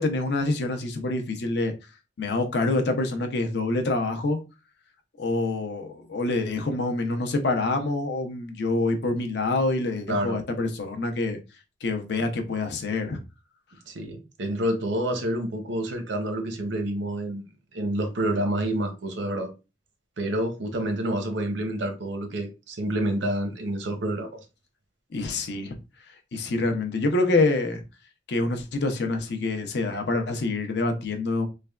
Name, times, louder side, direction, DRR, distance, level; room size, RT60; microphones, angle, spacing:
voice 1, 0.0-1.7 2.2-4.4 5.2-11.4 11.8-13.2 25.1-25.7 26.3-27.8 28.3-31.5, left 2 dB, 65° left, 0.5 m, -26 dB
voice 2, 10.1-10.4 13.9-17.4 17.7-19.5 20.2-24.4, right 1 dB, 90° right, 0.7 m, -28 dB
3.2 x 2.2 x 2.3 m
head